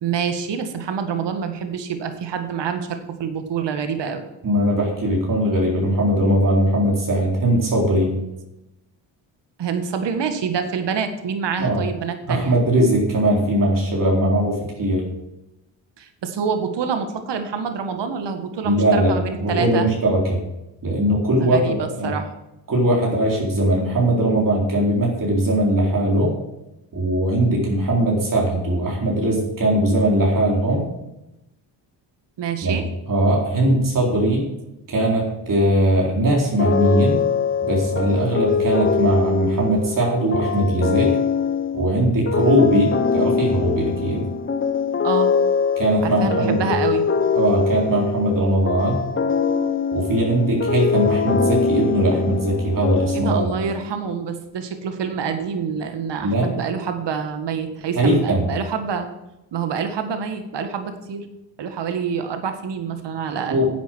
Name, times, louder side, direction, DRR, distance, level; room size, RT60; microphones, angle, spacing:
voice 1, 0.0-4.2 9.6-12.6 16.0-19.9 21.4-22.3 32.4-32.8 45.0-45.4 46.0-47.0 53.1-59.1 59.5-61.3 61.6-63.6, right 6 dB, 60° right, 7 dB, 1.9 m, -26 dB
voice 2, 4.4-8.1 11.6-11.8 12.3-15.0 18.6-20.4 20.8-22.1 22.7-26.3 26.9-30.9 32.6-32.8 33.1-34.4 34.9-37.2 37.6-41.1 41.7-44.2 45.8-46.7 47.4-49.0 49.9-53.5 56.2-56.5 58.0-58.4 63.5-63.7, right 1 dB, 45° right, -2 dB, 4.0 m, -20 dB
sound 1, 36.6-53.8, left 6 dB, 25° left, 0.9 m, -23 dB
10.5 x 8.2 x 6.3 m, 0.93 s
cardioid pair, 90°, 46 cm